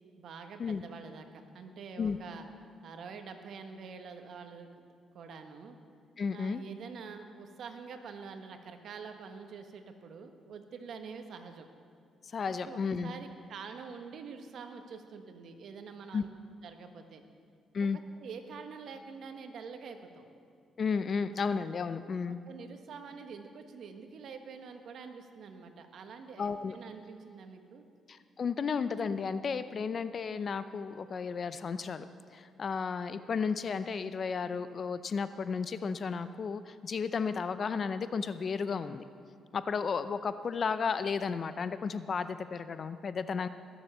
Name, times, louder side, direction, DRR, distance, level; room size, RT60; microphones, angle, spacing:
voice 1, 0.2-2.4 2.8-5.8 6.3-11.7 12.5-16.3 16.6-17.2 18.2-20.3 22.3-27.8, right 5 dB, 65° right, 6 dB, 1.3 m, -46 dB
voice 2, 6.2-6.6 12.3-13.1 16.1-16.2 17.7-18.0 20.8-22.4 26.4-26.8 28.1-32.1 32.3-39.1 39.5-43.5, left 5 dB, 45° left, 12 dB, 0.6 m, -33 dB
20.0 x 7.2 x 6.7 m, 2.3 s
cardioid pair, 90°, 0 cm